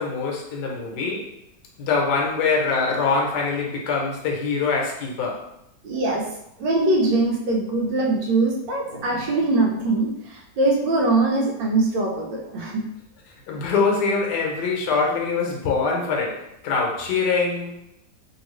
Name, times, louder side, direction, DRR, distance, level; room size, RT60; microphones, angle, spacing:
voice 1, 0.0-1.3 1.8-5.5 13.5-17.8, left 4 dB, 70° left, -1 dB, 1.3 m, -24 dB
voice 2, 5.8-6.2 6.6-12.9, right 2 dB, 85° right, -1 dB, 1.4 m, -22 dB
3.1 x 2.8 x 3.1 m, 0.82 s
omnidirectional pair, 1.9 m